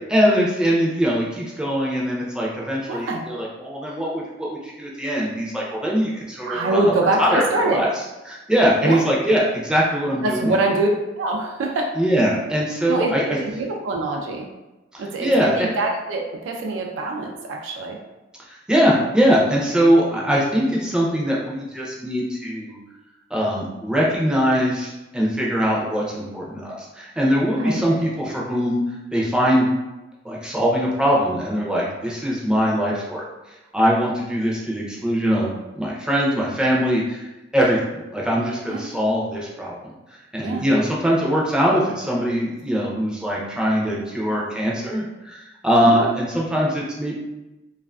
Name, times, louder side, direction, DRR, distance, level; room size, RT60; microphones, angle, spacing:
voice 1, 0.1-7.4 7.7-7.9 8.3-10.5 12.0-13.2 14.9-15.7 18.7-22.8 23.3-28.8 29.1-29.7 30.2-33.2 33.7-37.2 37.5-37.8 38.1-39.7 40.3-47.2, equal, 5° right, -4 dB, 0.4 m, -21 dB
voice 2, 2.9-3.3 6.5-7.8 8.8-9.0 10.2-10.9 11.2-11.9 12.9-14.5 15.0-18.0 27.6-28.0 38.7-38.9 40.4-40.7 45.8-46.1, right 2 dB, 85° right, 1 dB, 0.4 m, -24 dB
2.4 x 2.4 x 2.2 m, 1.0 s
head